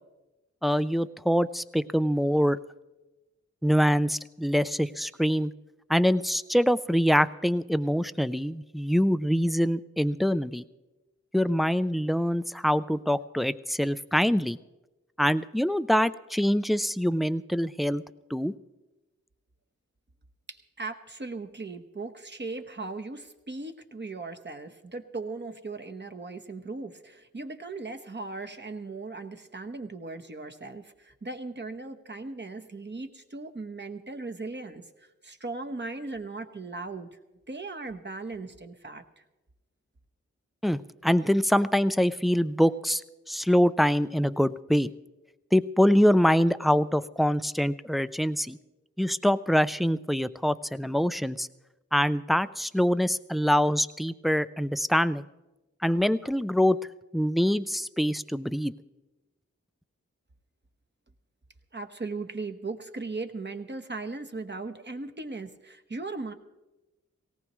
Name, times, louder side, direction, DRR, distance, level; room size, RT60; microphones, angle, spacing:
voice 1, 0.6-2.6 3.6-5.5 5.9-10.6 11.3-14.6 15.2-18.0 18.3-18.5 40.6-43.0 43.3-44.9 45.5-48.6 49.0-51.5 51.9-55.2 55.8-56.8 57.1-58.7, equal, ahead, 14 dB, 0.4 m, -24 dB
voice 2, 20.5-37.1 37.5-39.2 61.7-66.3, right 3 dB, 35° right, 6 dB, 1.1 m, -38 dB
18.0 x 18.0 x 3.1 m, 1.1 s
cardioid pair, 55°, 30 cm